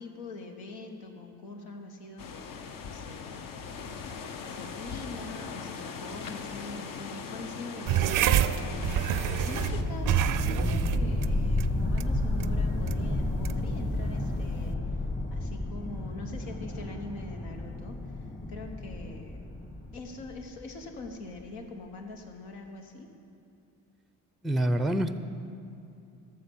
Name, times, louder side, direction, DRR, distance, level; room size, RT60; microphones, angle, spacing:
voice 1, 0.0-3.4 4.5-9.0 9.4-14.8 15.3-18.1 18.5-19.4 19.9-23.1, left 3 dB, 90° left, 3 dB, 1.2 m, -43 dB
sound 1, 2.2-9.8, left 5 dB, 60° left, 0.9 m, -40 dB
sound 2, 7.9-14.7, right 11 dB, 55° right, 0.5 m, -30 dB
sound 3, 8.0-21.1, left 2 dB, 20° left, 1.1 m, -32 dB
voice 2, 24.4-25.1, right 1 dB, ahead, 10 dB, 0.4 m, -26 dB
12.5 x 6.8 x 5.4 m, 2.6 s
supercardioid pair, 70°, 38 cm